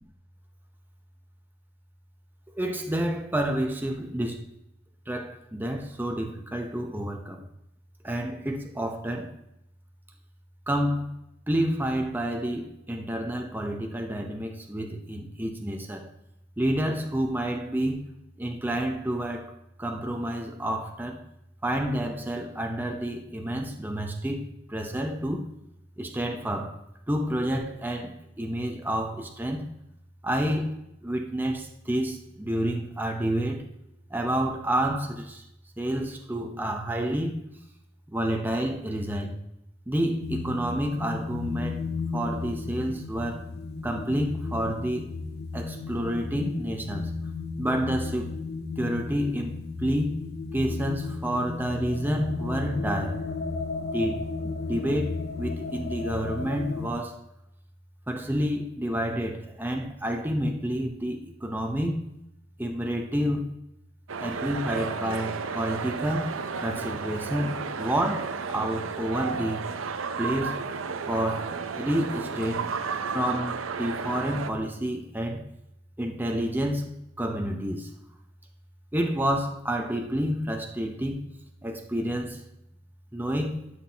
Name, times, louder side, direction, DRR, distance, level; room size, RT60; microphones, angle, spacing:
voice 1, 2.5-4.4 5.1-7.4 8.0-9.4 10.7-11.1 11.5-16.1 16.6-18.1 18.4-21.3 21.6-25.5 26.0-26.8 27.1-29.7 30.2-33.7 34.1-35.4 35.8-37.4 38.1-39.4 39.9-43.5 43.8-45.2 45.5-47.1 47.6-48.4 48.8-50.2 50.5-53.3 53.8-57.2 58.1-62.0 62.6-63.5 64.2-69.6 70.2-70.6 71.1-72.7 73.1-75.5 76.0-77.9 78.9-81.3 81.6-82.5 83.1-83.6, equal, 10° right, 0.7 m, -29 dB
sound 1, 40.2-56.9, left 4 dB, 55° left, 0.6 m, -34 dB
sound 2, 64.1-74.5, right 5 dB, 80° right, 0.6 m, -33 dB
12.5 x 5.8 x 2.8 m
head